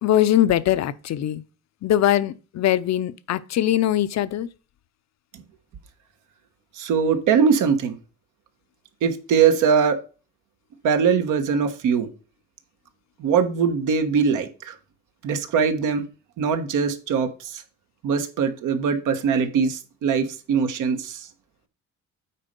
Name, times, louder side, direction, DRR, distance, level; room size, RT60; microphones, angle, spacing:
voice 1, 0.0-1.4 1.8-4.5, left 12 dB, 65° left, 0.7 m, -21 dB
voice 2, 6.8-7.9 9.0-10.0 10.8-12.1 13.2-14.7 15.2-16.0 16.4-17.6 18.0-21.2, right 6 dB, 85° right, 1.2 m, -21 dB
8.5 x 4.2 x 5.3 m
cardioid pair, 90°, 30 cm